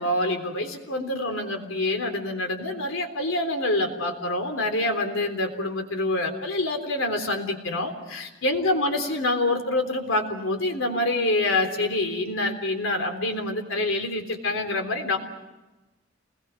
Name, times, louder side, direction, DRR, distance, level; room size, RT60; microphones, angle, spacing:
voice 1, 0.0-15.2, left 2 dB, 90° left, 5 dB, 3.6 m, -26 dB
29.0 x 21.0 x 6.3 m, 1.1 s
head